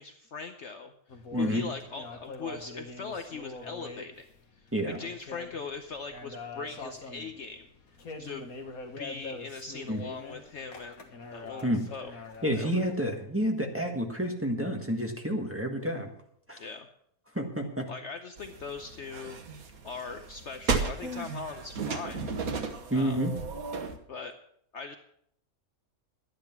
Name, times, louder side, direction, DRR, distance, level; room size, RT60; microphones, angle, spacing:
voice 1, 0.0-4.3 4.8-7.7 8.2-8.5 9.0-12.1 12.5-12.7 16.6-16.9 17.9-19.4 19.8-22.3 22.9-23.2 24.1-24.3 24.7-25.0, left 5 dB, 55° left, 7 dB, 1.0 m, -40 dB
sound 1, 1.1-13.0, left 3 dB, 70° left, 2.0 m, -44 dB
voice 2, 1.3-1.6 4.7-5.0 9.9-10.0 11.6-11.8 12.4-16.1 16.5-16.6 17.3-17.9 22.9-23.3, equal, 10° right, 1 dB, 1.6 m, -29 dB
sound 2, 18.4-24.0, right 4 dB, 70° right, 1.6 m, -34 dB
11.5 x 10.5 x 5.9 m, 0.70 s
omnidirectional pair, 1.6 m